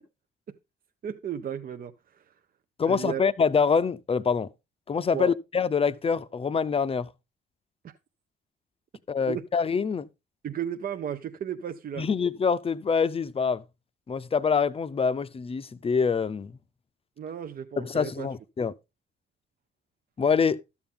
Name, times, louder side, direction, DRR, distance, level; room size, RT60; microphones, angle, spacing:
voice 1, 1.0-2.3 2.9-3.2 5.1-5.3 7.8-8.0 9.2-9.4 10.4-12.1 17.2-18.3, right 9 dB, 45° right, 0.6 m, -34 dB
voice 2, 2.8-4.5 4.9-7.1 9.1-10.1 12.0-13.6 14.1-16.5 17.8-18.7 20.2-20.6, left 5 dB, 30° left, 0.6 m, -25 dB
12.5 x 7.0 x 3.7 m
cardioid pair, 90°, 20 cm